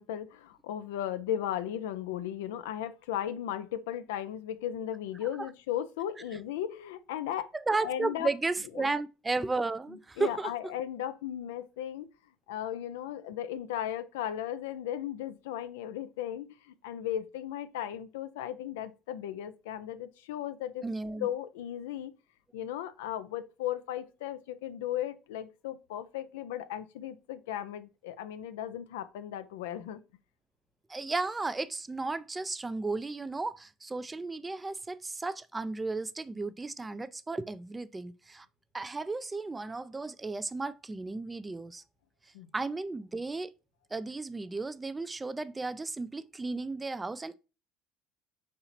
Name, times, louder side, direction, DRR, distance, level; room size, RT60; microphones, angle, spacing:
voice 1, 0.0-7.5 7.8-8.3 8.8-8.9 9.9-12.1 12.5-20.9 21.2-22.1 22.5-30.0 42.3-42.5, left 11 dB, 80° left, 0.4 m, -36 dB
voice 2, 7.5-10.5 20.8-21.3 30.9-38.5 38.7-41.8 42.5-43.5 43.9-47.4, right 3 dB, 20° right, 0.4 m, -34 dB
4.2 x 2.8 x 4.2 m
hypercardioid pair, 70°, 0 cm